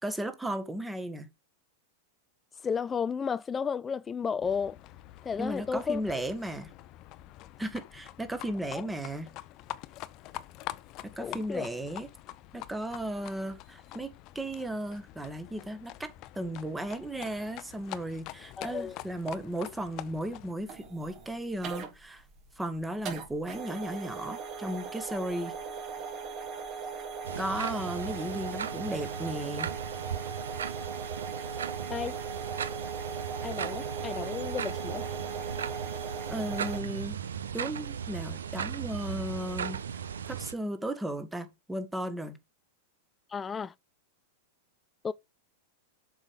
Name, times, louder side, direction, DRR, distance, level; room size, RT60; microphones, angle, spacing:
voice 1, 0.0-1.3 5.4-6.7 7.6-9.3 11.0-12.1 12.5-16.1 16.4-22.2 22.6-25.6 27.4-29.7 36.3-37.2 37.5-39.8 40.3-42.4, right 1 dB, 10° right, 1.9 m, -35 dB
voice 2, 2.6-4.8 5.2-6.2 8.7-8.8 11.2-11.6 18.6-19.0 31.9-32.2 33.4-35.0 43.3-43.7 45.0-45.1, left 6 dB, 20° left, 0.4 m, -33 dB
Livestock farm animals working animals, 4.4-20.5, left 15 dB, 45° left, 0.7 m, -46 dB
sound 1, 20.6-36.8, right 5 dB, 40° right, 3.5 m, -39 dB
sound 2, 27.2-40.5, right 8 dB, 75° right, 0.9 m, -37 dB
7.2 x 6.3 x 5.2 m
figure-of-eight pair, 95°, 0 cm